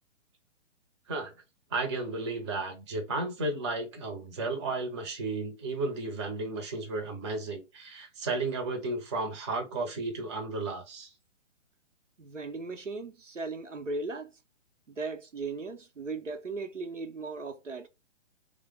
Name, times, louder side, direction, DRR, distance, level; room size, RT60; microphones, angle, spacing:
voice 1, 1.7-11.1, right 3 dB, 25° right, 0.6 m, -33 dB
voice 2, 12.2-14.3 14.9-17.9, right 3 dB, 85° right, 0.7 m, -37 dB
3.4 x 2.0 x 3.2 m
figure-of-eight pair, 125°, 36 cm